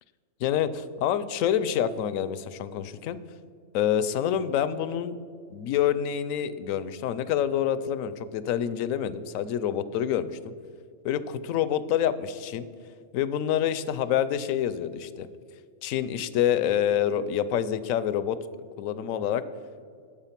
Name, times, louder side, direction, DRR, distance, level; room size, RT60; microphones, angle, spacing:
voice 1, 0.4-3.2 3.7-5.2 5.5-10.5 11.0-12.7 13.1-15.3 15.8-18.4 18.8-19.4, left 10 dB, 85° left, 14 dB, 1.0 m, -27 dB
8.9 x 7.7 x 5.8 m, 2.2 s
omnidirectional pair, 1.4 m